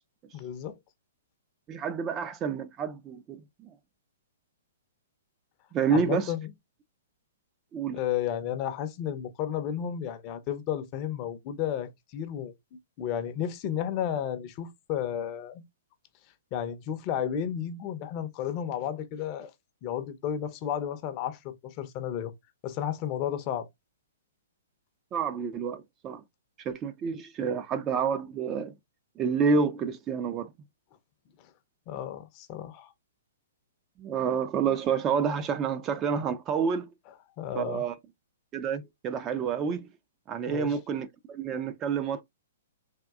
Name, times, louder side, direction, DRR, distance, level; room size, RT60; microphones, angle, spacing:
voice 1, 0.3-0.8 5.9-6.5 7.9-12.5 13.0-15.6 16.5-19.5 19.8-22.3 22.6-23.7 31.9-32.9 37.4-37.8 40.5-40.8, left 9 dB, 35° left, 0.6 m, -32 dB
voice 2, 1.7-3.7 5.7-6.3 7.7-8.0 25.1-26.2 26.7-28.7 29.2-30.5 34.0-36.9 37.5-37.9 38.5-39.9 40.3-42.2, right 6 dB, 25° right, 0.4 m, -29 dB
3.6 x 2.5 x 2.3 m
hypercardioid pair, 140°, 0 cm